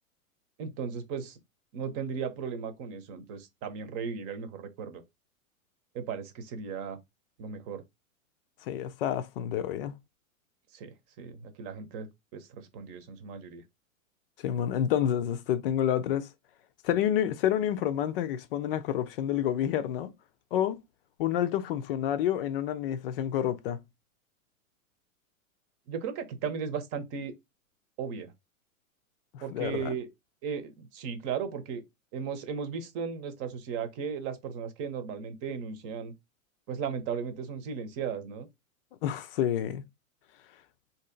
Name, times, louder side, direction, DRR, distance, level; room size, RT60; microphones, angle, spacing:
voice 1, 0.6-1.4 1.7-5.0 5.9-7.0 7.4-7.8 10.7-13.6 25.9-27.3 28.0-28.3 29.4-30.1 30.4-31.8 32.1-36.1 36.7-38.5, right 6 dB, 35° right, 0.9 m, -36 dB
voice 2, 8.7-9.9 14.4-16.3 16.8-20.1 20.5-20.8 21.2-23.8 29.3-29.9 39.0-39.8, left 10 dB, 45° left, 0.5 m, -29 dB
2.9 x 2.8 x 3.8 m
hypercardioid pair, 115°, 42 cm